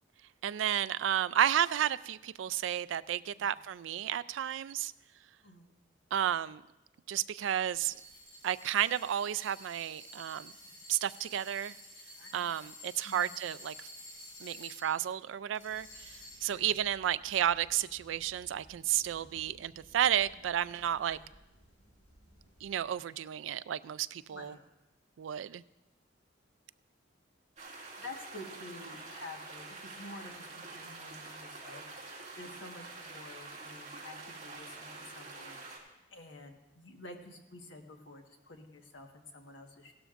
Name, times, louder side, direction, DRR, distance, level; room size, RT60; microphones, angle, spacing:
voice 1, 0.4-4.9 6.1-6.6 7.1-7.9 8.4-10.5 10.9-11.8 12.3-13.9 14.4-21.2 22.6-24.5 25.2-25.6, right 10 dB, 90° right, 17 dB, 0.3 m, -32 dB
sound 1, 7.7-15.1 15.5-16.7, left 1 dB, 30° left, 2.7 m, -51 dB
voice 2, 12.1-12.5 13.0-13.3 16.5-16.8 21.1-21.3 24.3-24.6 27.7-39.9, left 2 dB, 80° left, 3 dB, 1.4 m, -50 dB
sound 2, 15.6-22.9, equal, 65° left, 4.7 m, -61 dB
sound 3, 27.6-35.8, right 3 dB, 40° right, 2.1 m, -47 dB
17.0 x 12.0 x 2.5 m, 0.98 s
head